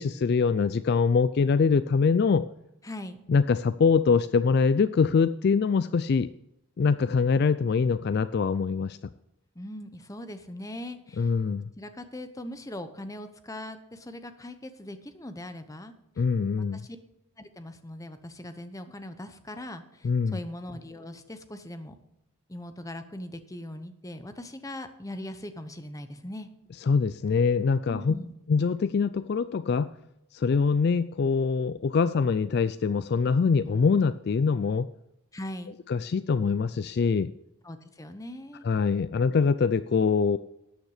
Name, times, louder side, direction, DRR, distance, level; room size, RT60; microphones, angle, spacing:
voice 1, 0.0-2.5 3.3-6.3 6.8-9.0 11.2-11.7 16.2-16.8 20.0-20.4 26.9-28.1 28.5-29.9 30.3-34.9 35.9-37.3 38.6-40.4, left 5 dB, 50° left, 14 dB, 0.3 m, -24 dB
voice 2, 2.8-3.2 9.5-11.3 11.8-15.9 16.6-17.0 17.4-22.0 22.5-26.5 27.9-28.3 35.3-35.8 37.6-38.7, left 1 dB, 15° left, 9 dB, 0.9 m, -40 dB
13.0 x 9.0 x 4.9 m, 0.86 s
head